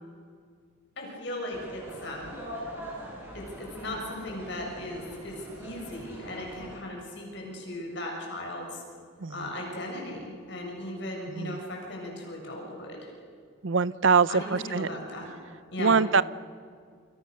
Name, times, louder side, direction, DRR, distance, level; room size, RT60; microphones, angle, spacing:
voice 1, 1.0-2.3 3.3-8.8 9.3-13.1 14.3-15.3 15.7-16.0, left 1 dB, 55° left, 0 dB, 7.2 m, -37 dB
sound 1, 1.5-6.8, equal, 10° right, 7.7 m, -43 dB
voice 2, 13.6-14.9 15.8-16.2, right 5 dB, 65° right, 17 dB, 0.7 m, -23 dB
29.0 x 27.0 x 6.7 m, 2.1 s
head